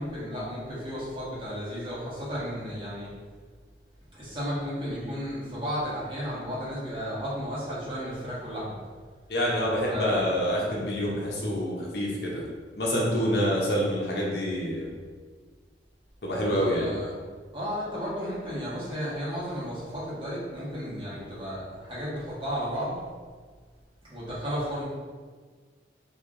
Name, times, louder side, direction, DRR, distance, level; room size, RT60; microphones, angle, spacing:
voice 1, 0.0-3.1 4.1-8.8 9.9-10.2 16.4-17.1 17.5-22.9 24.1-24.8, equal, 30° right, -9 dB, 1.3 m, -33 dB
voice 2, 9.3-12.4 12.8-14.9 16.2-16.9, equal, 65° left, -3 dB, 0.8 m, -27 dB
3.3 x 2.8 x 3.7 m, 1.5 s
head